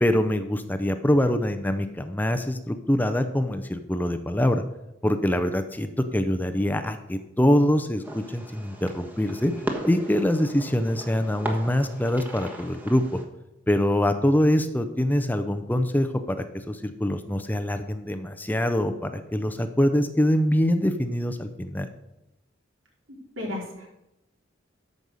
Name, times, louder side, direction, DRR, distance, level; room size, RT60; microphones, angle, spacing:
voice 1, 0.0-4.6 5.0-9.5 9.9-13.2 13.7-21.9, left 1 dB, 10° left, 8 dB, 0.6 m, -24 dB
Fireworks, 8.0-13.2, right 1 dB, 10° right, 1.2 m, -37 dB
voice 2, 23.1-23.9, left 2 dB, 85° right, -2 dB, 4.0 m, -34 dB
13.5 x 5.4 x 6.4 m, 0.91 s
head